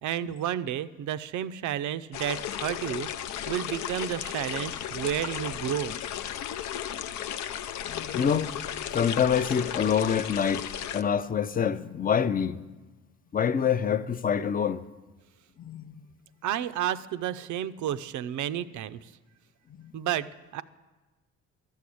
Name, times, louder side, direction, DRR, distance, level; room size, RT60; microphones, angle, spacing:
voice 1, 0.0-5.9 16.4-19.1 19.9-20.6, right 11 dB, 75° right, 0.5 m, -31 dB
sound 1, 2.1-11.0, left 10 dB, 70° left, 0.6 m, -35 dB
voice 2, 7.9-8.5 8.9-10.6 10.9-12.6 13.3-14.8 15.6-16.0 19.8-19.9, left 7 dB, 30° left, 0.5 m, -26 dB
12.0 x 6.5 x 8.5 m
cardioid pair, 90°, 30 cm